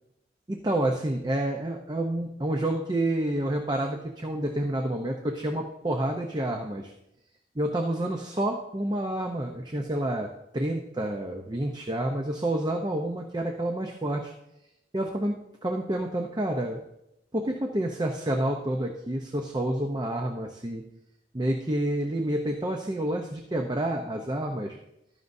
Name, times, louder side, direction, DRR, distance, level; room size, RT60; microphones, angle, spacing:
voice 1, 0.5-6.9 7.6-14.3 14.9-15.3 15.6-16.8 17.3-20.8 21.3-24.8, right 1 dB, 25° right, 3 dB, 0.7 m, -29 dB
15.0 x 12.5 x 2.7 m, 0.86 s
head